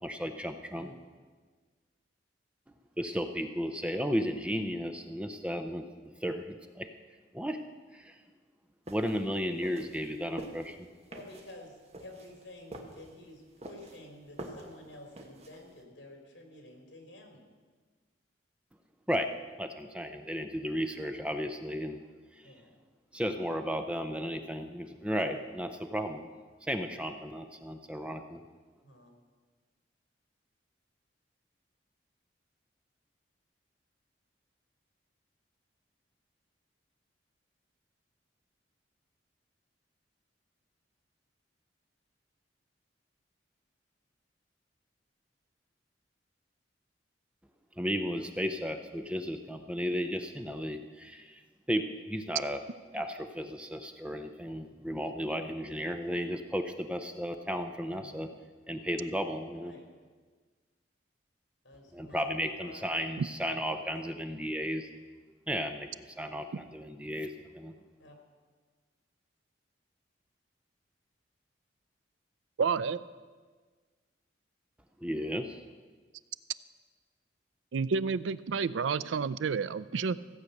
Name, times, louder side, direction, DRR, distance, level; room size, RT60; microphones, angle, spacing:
voice 1, 0.0-1.0 3.0-6.9 7.3-7.6 7.9-8.2 8.9-10.9 19.1-19.3 19.6-22.0 22.3-22.5 23.1-26.3 26.6-28.4 47.8-51.4 51.7-52.6 52.9-58.3 58.7-59.7 61.9-65.0 65.5-65.9 66.2-67.8 75.0-75.6, equal, 5° right, 7 dB, 0.5 m, -34 dB
sound 1, 8.9-15.8, right 1 dB, 35° right, 1.3 m, -47 dB
voice 2, 11.1-17.4 22.4-22.8 25.3-25.5 28.8-29.1 57.9-58.3 59.6-59.9 61.6-63.0 63.6-64.2 68.0-68.2, left 1 dB, 70° left, 3 dB, 2.8 m, -51 dB
voice 3, 72.6-73.0 77.7-80.2, right 5 dB, 90° right, 17 dB, 0.4 m, -30 dB
15.5 x 8.1 x 6.5 m, 1.4 s
head